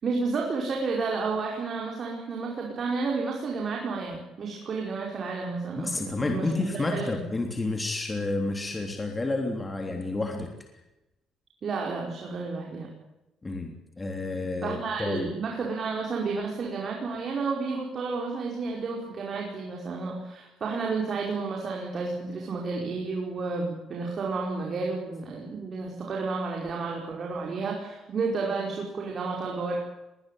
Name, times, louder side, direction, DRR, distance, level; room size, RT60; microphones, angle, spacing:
voice 1, 0.0-7.2 11.6-12.9 14.6-29.8, right 4 dB, 45° right, -1 dB, 5.1 m, -31 dB
voice 2, 5.7-10.5 13.4-15.3, left 2 dB, 20° left, 3 dB, 3.4 m, -30 dB
21.5 x 19.0 x 9.4 m, 0.96 s
cardioid pair, 110°, 0 cm